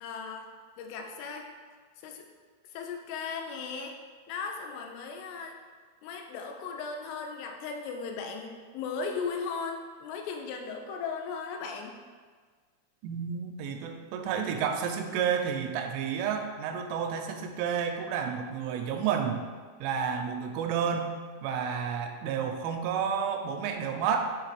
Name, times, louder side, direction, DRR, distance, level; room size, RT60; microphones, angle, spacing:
voice 1, 0.0-0.5 0.8-1.5 2.0-2.3 2.7-4.0 4.3-5.6 6.0-12.0, left 5 dB, 85° left, 3 dB, 3.1 m, -37 dB
voice 2, 13.0-19.4 19.8-24.4, right 7 dB, 85° right, 5 dB, 3.1 m, -31 dB
7.1 x 3.9 x 4.9 m, 1.6 s
omnidirectional pair, 5.6 m